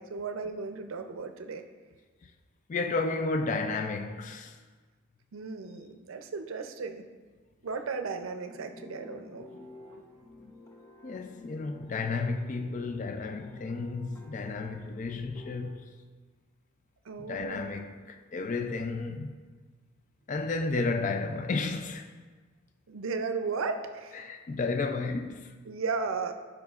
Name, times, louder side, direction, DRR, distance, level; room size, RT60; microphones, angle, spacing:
voice 1, 0.0-1.7 5.3-7.1 7.6-9.5 17.1-17.7 22.9-24.2 25.7-26.3, right 4 dB, 80° right, 0.5 m, -35 dB
voice 2, 2.7-4.6 11.0-15.8 17.2-19.4 20.3-22.1 24.2-25.5, left 3 dB, 35° left, 0.3 m, -32 dB
sound 1, 8.5-15.7, left 2 dB, 15° left, 0.7 m, -50 dB
12.0 x 4.7 x 2.4 m
head